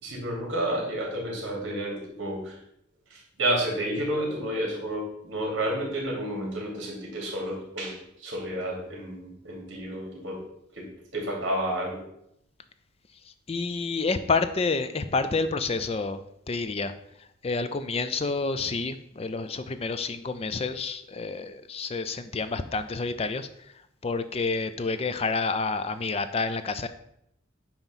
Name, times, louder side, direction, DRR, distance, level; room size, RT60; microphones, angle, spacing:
voice 1, 0.0-2.6 3.1-10.4 10.7-10.9 11.1-12.0, right 1 dB, 60° right, -2 dB, 2.7 m, -30 dB
voice 2, 13.5-16.9 17.4-23.5 24.0-26.9, left 4 dB, 30° left, 11 dB, 0.4 m, -29 dB
8.9 x 3.0 x 5.6 m, 0.77 s
head